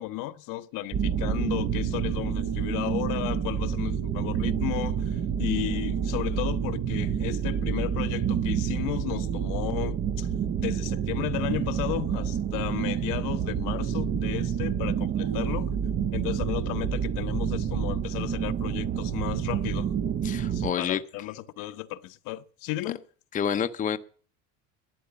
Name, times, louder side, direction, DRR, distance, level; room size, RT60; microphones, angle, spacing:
voice 1, 0.0-10.3 10.6-15.7 16.1-19.9 20.5-23.0, left 16 dB, 60° left, 0.9 m, -34 dB
sound 1, 0.9-20.7, right 8 dB, 30° right, 0.5 m, -28 dB
voice 2, 20.2-21.0 23.3-24.0, left 8 dB, 20° left, 0.7 m, -28 dB
12.5 x 8.7 x 6.8 m
supercardioid pair, 115°, 36 cm